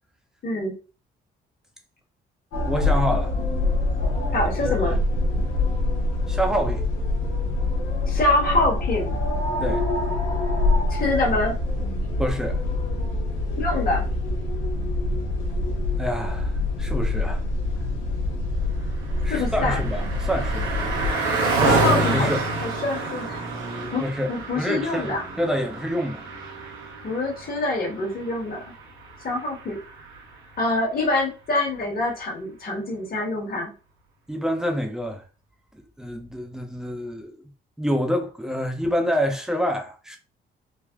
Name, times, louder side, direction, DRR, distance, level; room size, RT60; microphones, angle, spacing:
voice 1, 0.4-0.7 4.3-5.0 8.1-9.2 10.9-11.5 13.6-14.0 19.3-19.8 21.6-22.3 22.6-23.4 23.9-24.0 24.3-25.2 27.0-28.7 29.2-29.8 30.6-33.7, left 2 dB, 50° left, 1.3 m, -25 dB
sound 1, 2.5-21.1, left 2 dB, 90° left, 0.8 m, -25 dB
voice 2, 2.7-3.3 4.6-5.0 5.4-5.5 6.3-6.8 9.6-9.9 12.2-12.6 16.0-17.4 19.2-20.7 21.6-21.9 22.1-22.4 24.0-26.2 34.3-35.2 36.0-37.4 37.8-40.2, equal, 5° right, 0.6 m, -27 dB
Car passing by, 18.6-30.3, right 2 dB, 85° right, 0.9 m, -28 dB
3.3 x 2.1 x 2.3 m
cardioid pair, 90°, 20 cm